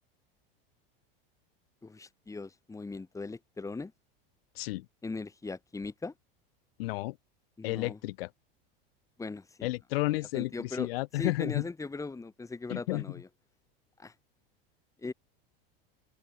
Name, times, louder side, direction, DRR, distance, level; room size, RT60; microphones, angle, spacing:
voice 1, 1.8-3.9 5.0-6.1 7.6-8.0 9.2-9.7 10.1-10.9 11.1-13.3 14.0-14.1 15.0-15.1, left 3 dB, 10° left, 2.4 m, -39 dB
voice 2, 4.5-4.8 6.8-7.2 7.6-8.3 9.6-11.7 12.7-13.0, left 20 dB, 75° left, 4.8 m, -32 dB
open air
supercardioid pair, 120°, 30 cm